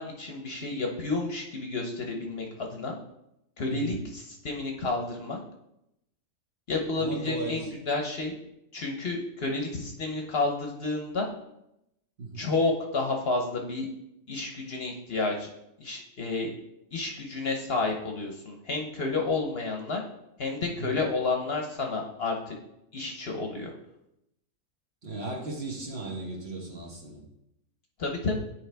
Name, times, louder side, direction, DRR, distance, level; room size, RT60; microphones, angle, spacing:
voice 1, 0.0-3.0 3.6-5.4 6.7-8.3 8.7-11.3 12.3-13.9 14.3-15.5 15.8-16.5 16.9-20.0 20.4-22.6 22.9-23.7 28.0-28.4, left 3 dB, 50° left, 1 dB, 1.0 m, -30 dB
voice 2, 3.7-4.0 7.0-7.7 12.2-12.5 20.7-21.0 25.0-27.2, right 2 dB, 50° right, -1 dB, 1.4 m, -36 dB
9.4 x 4.7 x 3.4 m, 0.82 s
omnidirectional pair, 1.5 m